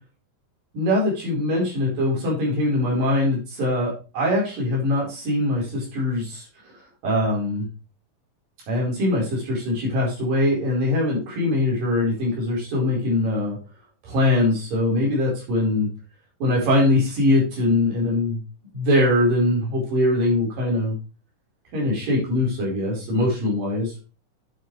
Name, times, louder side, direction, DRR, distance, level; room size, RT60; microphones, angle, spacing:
voice 1, 0.7-6.5 7.0-7.7 8.7-13.6 14.0-15.9 16.4-18.4 18.7-20.9 21.7-23.9, left 1 dB, 90° right, -3 dB, 6.1 m, -22 dB
10.0 x 8.0 x 3.2 m, 0.34 s
omnidirectional pair, 3.8 m